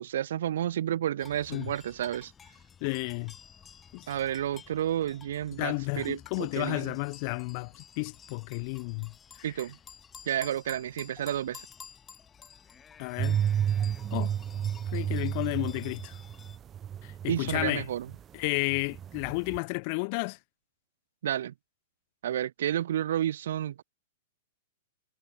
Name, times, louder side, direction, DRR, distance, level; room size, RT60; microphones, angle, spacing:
voice 1, 0.0-2.3 4.1-6.9 9.4-9.8 10.3-11.6 17.3-18.1 21.2-21.5 22.2-23.8, right 11 dB, 65° right, 0.5 m, -31 dB
sound 1, 1.2-16.6, left 7 dB, 10° left, 6.1 m, -52 dB
voice 2, 2.8-3.3 3.9-4.0 5.6-9.1 9.5-9.6 13.0-13.4 14.1-14.3 14.9-16.1 17.0-17.9 18.3-20.4, left 33 dB, 35° left, 0.6 m, -32 dB
sound 2, 13.2-18.2 18.5-19.6, right 9 dB, 15° right, 0.6 m, -31 dB
supercardioid pair, 175°, 0 cm